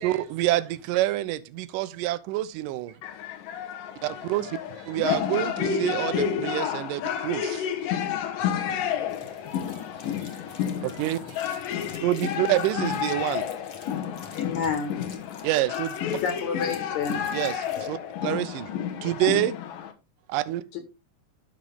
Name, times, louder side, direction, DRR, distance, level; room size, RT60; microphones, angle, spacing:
voice 1, 0.0-2.9 4.0-4.6 4.9-7.7 10.8-11.2 12.0-13.5 15.4-16.0 17.3-18.7 19.0-19.5 20.3-20.6, right 15 dB, 80° right, 2.3 m, -27 dB
sound 1, 3.0-19.9, left 8 dB, 85° left, 2.8 m, -30 dB
voice 2, 4.1-5.0 6.0-6.2 8.4-12.1 12.7-12.8 13.1-13.3, right 8 dB, 60° right, 1.9 m, -48 dB
sound 2, 9.1-17.9, left 5 dB, 45° left, 2.0 m, -49 dB
voice 3, 14.3-14.9 16.2-17.2 20.7-20.8, left 6 dB, 65° left, 2.8 m, -29 dB
11.5 x 6.4 x 3.5 m
omnidirectional pair, 3.8 m